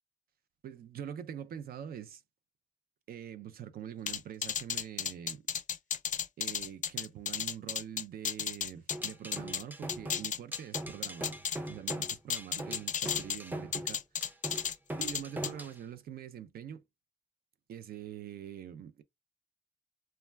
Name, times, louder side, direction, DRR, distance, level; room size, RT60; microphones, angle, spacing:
voice 1, 0.6-2.2 3.1-5.4 6.4-11.4 11.7-14.0 15.0-16.8 17.7-19.0, right 9 dB, 80° right, 0.4 m, -44 dB
sound 1, 4.1-9.6 9.9-11.6 11.9-13.4 13.7-14.7 15.0-15.5, left 8 dB, 55° left, 0.4 m, -34 dB
sound 2, 8.9-15.8, right 1 dB, 10° right, 0.4 m, -41 dB
2.2 x 2.2 x 3.2 m
cardioid pair, 90°, 15 cm